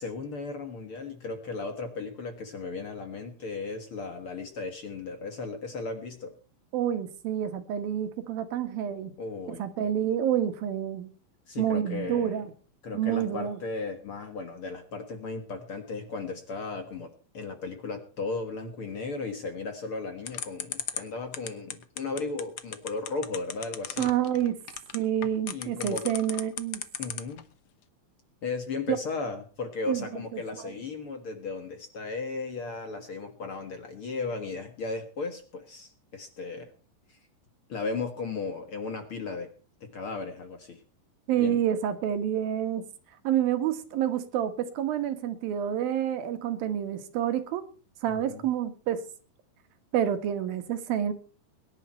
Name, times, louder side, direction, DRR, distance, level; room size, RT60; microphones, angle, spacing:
voice 1, 0.0-6.3 9.2-9.9 11.5-12.4 12.8-24.1 25.5-26.1 27.0-27.4 28.4-36.7 37.1-37.2 37.7-39.5 39.8-40.8 41.4-41.6 48.1-48.5, left 3 dB, 50° left, 1.9 m, -36 dB
voice 2, 6.7-9.1 9.5-11.1 11.6-12.5 12.9-13.6 24.0-24.6 24.9-26.8 29.9-30.4 41.3-42.8 43.2-47.6 48.0-49.0 49.9-51.1, right 10 dB, 85° right, 3.3 m, -28 dB
sound 1, 20.3-27.4, left 10 dB, 90° left, 1.2 m, -35 dB
22.5 x 10.5 x 4.4 m
omnidirectional pair, 4.1 m